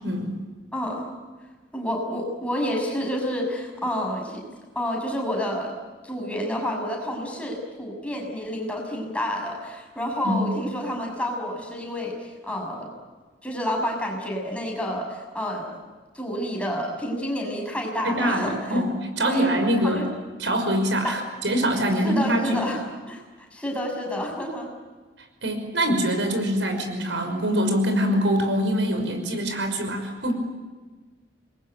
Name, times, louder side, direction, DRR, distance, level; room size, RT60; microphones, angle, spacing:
voice 1, 0.0-0.4 10.2-10.4 18.0-20.1 20.4-22.7 25.4-30.3, equal, 80° right, 6 dB, 5.8 m, -24 dB
voice 2, 0.7-1.1 1.7-4.4 4.7-5.7 6.0-12.9 13.4-15.1 15.3-15.7 16.1-18.8 19.2-20.1 21.0-21.1 22.0-24.7, equal, 5° left, 0 dB, 6.6 m, -29 dB
28.0 x 22.0 x 9.1 m, 1.3 s
head